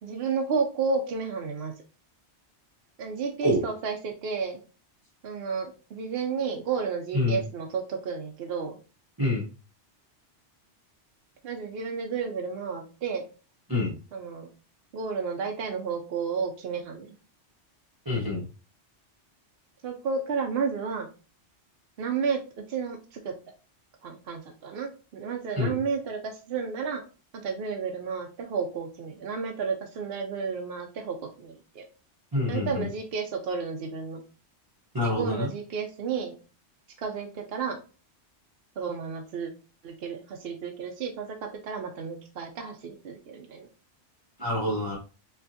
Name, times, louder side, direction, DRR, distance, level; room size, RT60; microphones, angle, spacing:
voice 1, 0.0-1.7 3.0-4.6 5.2-8.8 11.4-13.2 14.1-14.5 14.9-17.1 19.8-21.1 22.0-22.4 22.7-23.3 24.0-27.0 27.3-31.8 32.5-34.2 35.0-36.3 37.0-37.8 38.8-39.5 39.8-43.7, right 5 dB, 60° right, 3 dB, 0.8 m, -32 dB
voice 2, 18.0-18.5 25.6-25.8 32.3-32.9 34.9-35.5 44.4-45.0, left 1 dB, 20° right, -5 dB, 0.9 m, -26 dB
5.7 x 2.5 x 2.7 m, 0.35 s
omnidirectional pair, 1.2 m